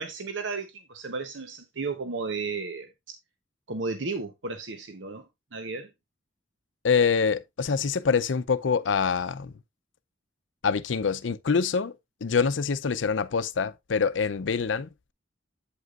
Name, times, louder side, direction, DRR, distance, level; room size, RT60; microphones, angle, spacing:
voice 1, 0.0-3.2 3.7-5.2 5.5-5.9, right 4 dB, 85° right, 0.9 m, -34 dB
voice 2, 6.8-9.5 10.6-11.9 12.2-15.1, left 5 dB, 90° left, 0.6 m, -25 dB
8.4 x 8.0 x 2.4 m
head